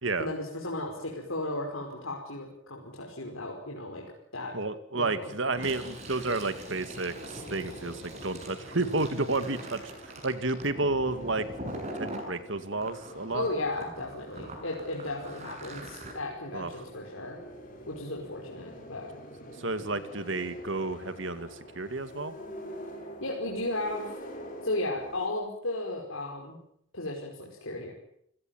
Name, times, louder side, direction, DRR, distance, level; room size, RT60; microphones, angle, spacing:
voice 1, 0.2-4.0 4.3-4.5 5.0-5.8 13.3-17.4 17.9-19.1 23.2-24.1 24.6-26.6 26.9-27.9, left 2 dB, 75° left, -1 dB, 5.3 m, -35 dB
voice 2, 4.5-11.5 11.7-13.5 16.5-16.8 19.6-22.4, right 2 dB, 65° right, 12 dB, 2.2 m, -31 dB
Fill (with liquid), 5.5-12.3 12.8-16.1, right 1 dB, 35° right, 7.2 m, -42 dB
sound 1, 6.6-25.3, equal, 40° left, 5.5 m, -47 dB
29.5 x 17.0 x 9.2 m, 0.72 s
head